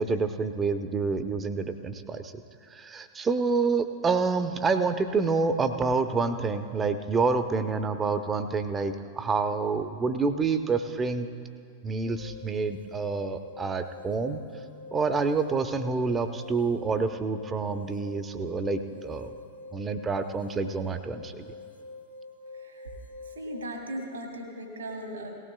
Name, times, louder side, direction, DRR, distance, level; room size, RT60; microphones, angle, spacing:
voice 1, 0.0-2.2 2.7-11.3 11.8-14.4 14.9-19.3 19.7-21.5, right 4 dB, 20° right, 9 dB, 0.7 m, -28 dB
sound 1, 12.1-23.8, left 3 dB, 70° left, 0.8 m, -46 dB
voice 2, 23.4-25.3, right 1 dB, 80° right, 1 dB, 2.0 m, -37 dB
18.5 x 16.5 x 2.3 m, 2.2 s
figure-of-eight pair, 90°, 0 cm